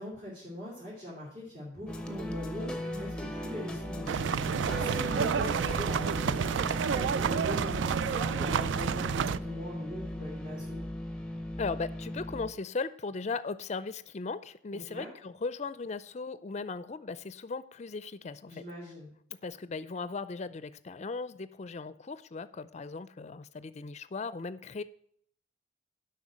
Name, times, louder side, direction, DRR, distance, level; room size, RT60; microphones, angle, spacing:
voice 1, 0.0-10.8 14.7-15.1 18.5-19.1, left 1 dB, 45° right, -7 dB, 2.9 m, -42 dB
sound 1, 1.9-12.5, left 1 dB, 5° left, 0.7 m, -37 dB
sound 2, 4.1-9.4, right 7 dB, 75° right, 0.3 m, -30 dB
voice 2, 11.6-18.6 19.4-24.8, left 4 dB, 35° left, 15 dB, 0.4 m, -37 dB
7.9 x 5.6 x 7.4 m, 0.64 s
head